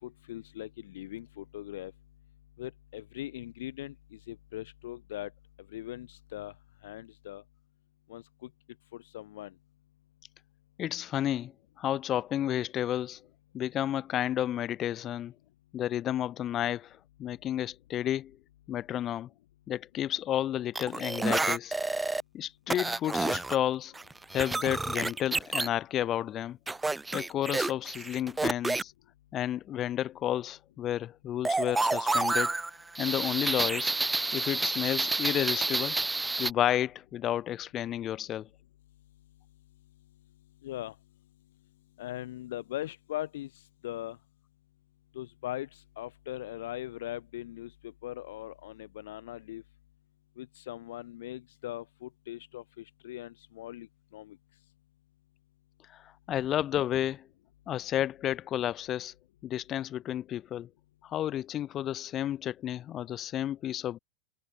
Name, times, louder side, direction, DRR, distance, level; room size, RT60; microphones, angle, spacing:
voice 1, 0.0-1.9 2.6-5.3 5.7-6.5 6.8-7.4 8.1-8.5 8.9-9.5 40.6-40.9 42.0-43.5 43.8-44.2 45.1-49.6 50.4-53.9 54.1-54.4, left 14 dB, 55° left, 3.0 m, -40 dB
voice 2, 10.8-13.2 13.5-15.3 15.7-18.4 18.7-19.3 19.7-21.7 22.3-23.9 24.3-26.6 27.1-28.9 29.3-32.5 33.0-33.9 34.3-36.0 36.4-38.5 55.9-57.3 57.7-59.1 59.4-60.7 61.0-64.0, left 11 dB, 30° left, 0.4 m, -31 dB
sound 1, 20.8-22.2 22.7-23.6 23.9-25.7 26.7-28.8 31.4-36.5, right 3 dB, 10° right, 1.1 m, -29 dB
figure-of-eight pair, 90°, 0 cm